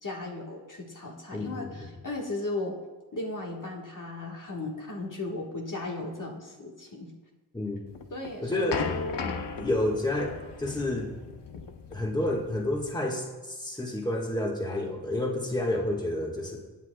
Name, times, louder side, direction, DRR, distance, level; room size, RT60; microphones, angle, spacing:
voice 1, 0.0-2.8 3.1-7.1 7.8-9.4, left 2 dB, 50° left, -1 dB, 1.5 m, -36 dB
voice 2, 1.3-1.9 7.5-7.8 8.4-8.8 9.5-11.1 11.9-16.6, left 1 dB, 10° left, -1 dB, 1.5 m, -30 dB
sound 1, 7.9-12.9, left 5 dB, 85° left, 0.8 m, -36 dB
17.5 x 8.5 x 2.2 m, 1.2 s
wide cardioid pair, 55°, 41 cm